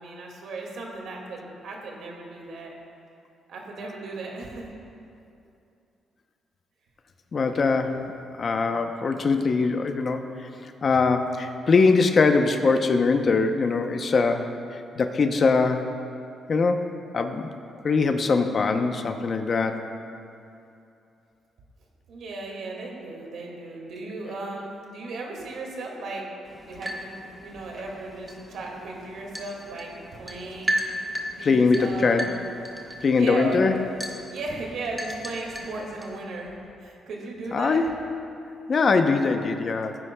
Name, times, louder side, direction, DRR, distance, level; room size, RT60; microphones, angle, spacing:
voice 1, 0.0-2.7 3.5-4.7 22.1-26.2 26.6-30.7 31.3-32.3 33.1-33.6 34.3-36.5 36.8-37.9, right 2 dB, 75° right, -1 dB, 2.1 m, -36 dB
voice 2, 7.3-8.0 8.4-10.2 10.8-14.5 15.0-15.8 16.5-16.8 17.1-17.5 17.8-19.9 31.4-32.3 33.0-33.7 37.5-37.9 38.7-40.0, left 4 dB, 45° left, 6 dB, 0.7 m, -22 dB
sound 1, 26.4-36.2, equal, 10° right, 1.4 m, -36 dB
17.0 x 9.7 x 2.3 m, 2.7 s
cardioid pair, 95°, 0 cm